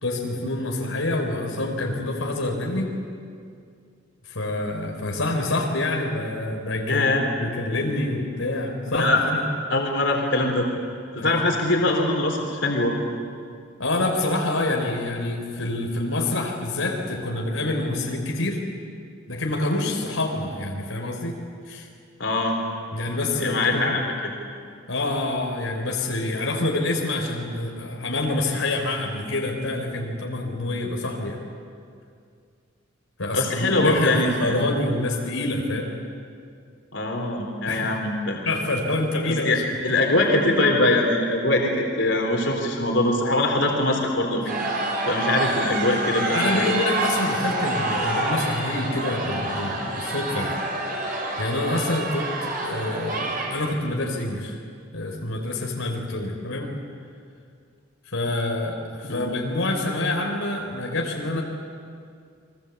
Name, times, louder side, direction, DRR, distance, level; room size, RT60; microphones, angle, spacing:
voice 1, 0.0-2.9 4.3-9.4 11.2-11.4 13.8-18.6 19.3-21.4 21.7-21.9 22.9-24.0 24.9-31.4 33.2-36.0 37.7-38.0 38.5-40.3 46.2-50.6 51.1-54.6 54.9-56.7 58.1-61.4, left 2 dB, 90° left, 1 dB, 3.7 m, -27 dB
voice 2, 6.9-7.2 8.9-9.2 9.7-10.7 11.1-13.0 22.2-22.6 23.4-24.3 33.3-34.6 36.9-38.4 39.2-39.6 39.8-44.7 45.1-46.7 59.0-59.3, left 2 dB, 65° left, 1 dB, 3.9 m, -22 dB
sound 1, 44.5-53.5, right 2 dB, 45° right, 6.0 m, -27 dB
30.0 x 22.5 x 8.2 m, 2.3 s
head